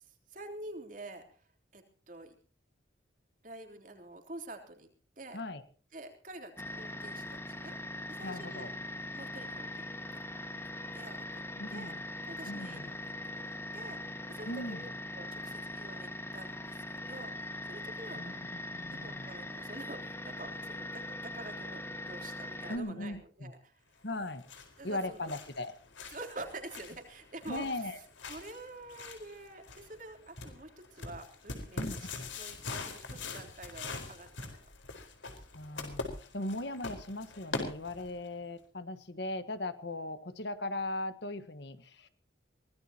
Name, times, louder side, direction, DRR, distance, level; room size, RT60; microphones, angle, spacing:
voice 1, 0.0-1.5 1.7-2.4 3.4-4.9 5.2-5.4 5.9-8.7 9.1-9.8 10.9-11.4 11.7-11.9 12.3-13.0 13.3-14.9 15.1-18.4 18.9-24.0 24.8-25.3 26.1-32.1 32.4-34.6, right 2 dB, 40° right, 5 dB, 3.5 m, -48 dB
sound 1, 6.6-22.8, left 1 dB, 15° left, 1.6 m, -41 dB
voice 2, 8.2-8.7 11.6-12.0 12.4-12.9 14.5-14.9 18.1-18.3 18.7-19.3 22.7-23.5 24.0-24.4 24.8-25.7 27.5-28.0 31.8-32.3 35.5-42.1, left 1 dB, 60° left, 12 dB, 1.4 m, -38 dB
sound 2, 24.1-38.3, left 3 dB, 75° left, 4.5 m, -43 dB
23.5 x 18.0 x 2.9 m, 0.40 s
head